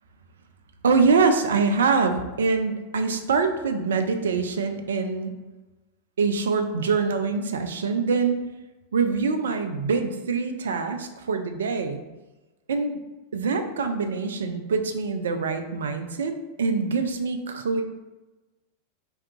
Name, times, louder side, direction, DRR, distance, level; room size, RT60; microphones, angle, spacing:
voice 1, 0.8-5.3 6.2-8.4 8.9-12.0 12.7-13.0 13.3-16.3 16.6-17.8, right 4 dB, 65° right, 6 dB, 0.3 m, -24 dB
2.7 x 2.3 x 3.5 m, 1.1 s
figure-of-eight pair, 90°, 0 cm